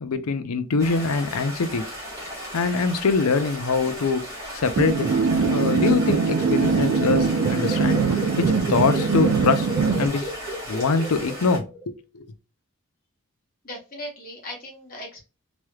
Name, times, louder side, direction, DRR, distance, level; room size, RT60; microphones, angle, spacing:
voice 1, 0.0-1.9 2.5-4.2 4.5-5.1 5.5-9.7 10.0-10.3 10.7-12.3, left 4 dB, 90° left, 0.5 m, -24 dB
Stream, 0.8-11.6, equal, 15° right, 1.2 m, -36 dB
sound 1, 4.8-10.1, right 5 dB, 75° right, 0.3 m, -22 dB
sound 2, 5.4-11.8, equal, 20° left, 1.5 m, -34 dB
voice 2, 13.6-15.2, left 1 dB, 40° left, 1.3 m, -38 dB
3.2 x 3.0 x 2.3 m
head